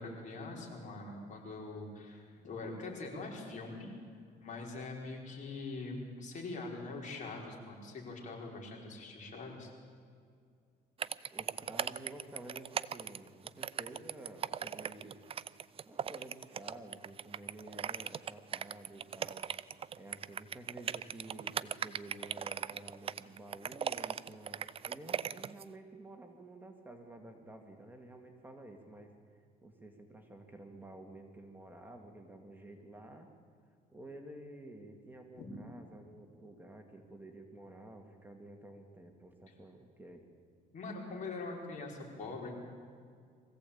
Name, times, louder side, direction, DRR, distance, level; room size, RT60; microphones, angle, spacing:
voice 1, 0.0-4.0 4.4-9.7 35.4-35.5 40.7-42.5, left 3 dB, 45° left, -1 dB, 5.2 m, -43 dB
sound 1, 11.0-25.6, right 8 dB, 35° right, 0.5 m, -38 dB
voice 2, 11.3-15.2 15.9-19.5 19.9-29.2 29.6-33.3 33.9-40.2, right 1 dB, 10° right, 3 dB, 2.2 m, -51 dB
23.0 x 15.5 x 8.6 m, 2.2 s
cardioid pair, 110°, 17 cm